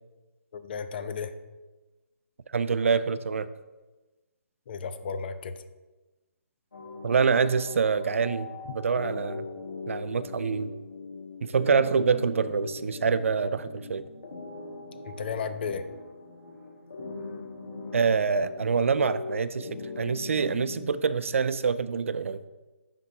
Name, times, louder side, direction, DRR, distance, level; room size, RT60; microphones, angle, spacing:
voice 1, 0.5-1.3 4.7-5.5 15.0-15.8, left 6 dB, 45° left, 10 dB, 0.5 m, -33 dB
voice 2, 2.5-3.5 7.0-8.5 8.7-9.5 9.9-10.7 11.4-14.1 17.9-22.4, right 5 dB, 65° right, 13 dB, 0.4 m, -26 dB
sound 1, 6.7-20.9, left 4 dB, 75° left, 1.5 m, -40 dB
10.5 x 3.6 x 2.7 m, 1.2 s
figure-of-eight pair, 140°, 8 cm